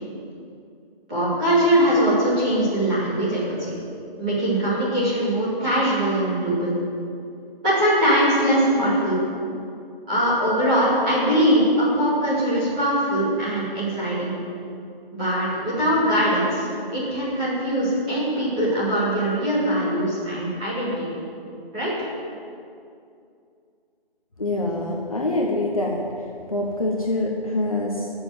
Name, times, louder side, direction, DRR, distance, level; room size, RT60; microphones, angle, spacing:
voice 1, 1.1-3.7 4.2-6.7 7.6-9.2 10.1-14.3 15.1-16.7 16.9-21.0 21.7-21.9, equal, 10° right, -13 dB, 2.6 m, -21 dB
voice 2, 24.4-28.1, left 2 dB, 35° left, -1 dB, 1.3 m, -25 dB
14.5 x 7.1 x 9.5 m, 2.5 s
figure-of-eight pair, 180°, 29 cm